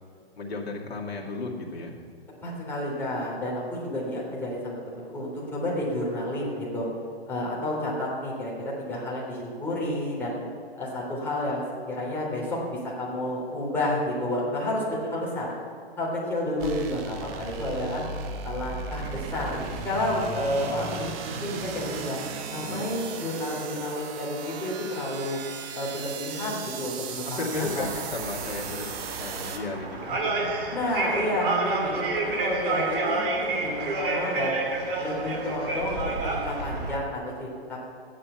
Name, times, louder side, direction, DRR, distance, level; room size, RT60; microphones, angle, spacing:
voice 1, 0.4-1.9 22.6-23.0 27.2-28.9 29.2-30.7, left 3 dB, 75° left, -2 dB, 2.3 m, -34 dB
voice 2, 2.4-6.9 7.3-8.5 8.8-10.4 10.7-15.5 16.0-18.0 18.4-22.2 22.5-25.4 25.7-27.9 30.7-34.6 35.0-37.8, left 1 dB, 5° left, -6 dB, 3.6 m, -30 dB
sound 1, 16.6-29.6, right 5 dB, 25° right, 1.0 m, -36 dB
sound 2, 27.5-36.9, right 3 dB, 55° right, 2.5 m, -30 dB
14.0 x 10.0 x 5.7 m, 2.3 s
hypercardioid pair, 140°, 31 cm